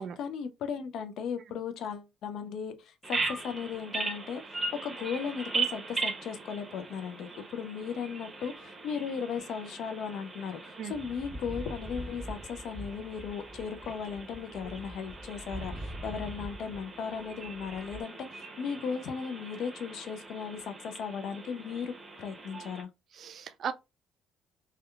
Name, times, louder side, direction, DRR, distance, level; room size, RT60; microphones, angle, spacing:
voice 1, 0.0-21.9 22.2-22.9, left 6 dB, 65° left, 0.4 m, -37 dB
Bird vocalization bird call bird song, 3.0-22.8, right 3 dB, 30° right, 0.8 m, -40 dB
sound 1, 10.9-16.9 17.1-18.0, equal, 5° right, 1.2 m, -43 dB
voice 2, 23.1-23.7, right 7 dB, 60° right, 0.3 m, -36 dB
2.7 x 2.2 x 2.2 m
hypercardioid pair, 50°, 0 cm